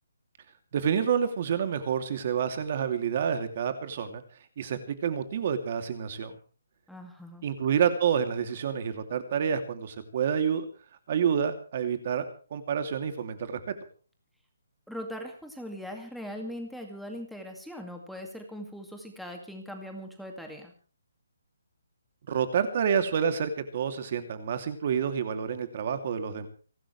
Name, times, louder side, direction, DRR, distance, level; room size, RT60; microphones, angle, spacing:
voice 1, 0.7-4.2 4.6-6.3 7.4-10.7 11.1-12.3 12.5-13.7 22.3-26.5, right 7 dB, 35° right, 8 dB, 2.7 m, -28 dB
voice 2, 6.9-7.4 14.9-20.7, equal, ahead, 2 dB, 2.1 m, -40 dB
30.0 x 12.5 x 3.3 m, 0.40 s
hypercardioid pair, 170°, 0 cm